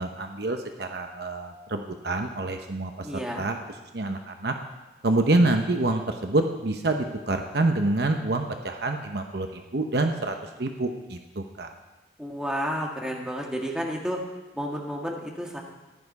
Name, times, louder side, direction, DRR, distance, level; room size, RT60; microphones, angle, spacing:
voice 1, 0.0-3.1 3.4-3.6 3.9-4.5 5.0-11.7, right 2 dB, 60° right, 5 dB, 0.9 m, -27 dB
voice 2, 3.0-3.5 12.2-14.2 14.6-15.6, equal, 5° right, -1 dB, 1.8 m, -31 dB
14.5 x 10.5 x 5.4 m, 1.1 s
head